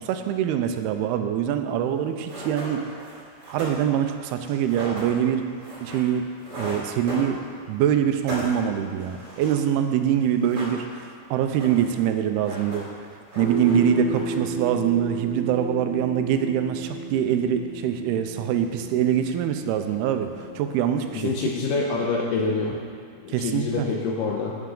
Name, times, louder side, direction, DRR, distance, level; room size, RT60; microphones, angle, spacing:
voice 1, 0.0-2.9 3.5-5.4 5.8-6.3 6.6-7.4 7.7-10.9 11.3-12.9 13.4-21.3 23.3-23.9, right 9 dB, 85° right, 7 dB, 2.6 m, -24 dB
sound 1, 1.9-2.0 2.3-7.7 8.0-9.9 10.2-11.1 11.4-12.0 12.3-13.0 13.3-14.5, equal, 30° right, 3.7 m, -37 dB
sound 2, 13.4-21.9, right 3 dB, 60° left, 1.9 m, -34 dB
voice 2, 21.1-22.8 23.2-24.6, left 4 dB, 80° left, -1 dB, 2.1 m, -26 dB
13.5 x 9.2 x 3.8 m, 2.1 s
omnidirectional pair, 4.6 m